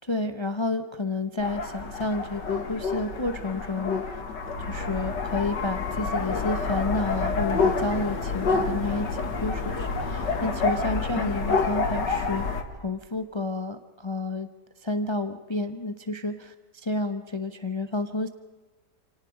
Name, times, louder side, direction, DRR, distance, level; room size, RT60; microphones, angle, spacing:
voice 1, 0.0-4.2 4.6-12.5 12.8-14.5 14.8-18.3, left 2 dB, 25° left, 9 dB, 0.7 m, -30 dB
sound 1, 1.4-12.6, left 4 dB, 90° left, 2.4 m, -28 dB
sound 2, 4.6-7.2, left 1 dB, 75° right, 4.6 m, -41 dB
28.0 x 18.0 x 5.1 m, 1.2 s
omnidirectional pair, 1.8 m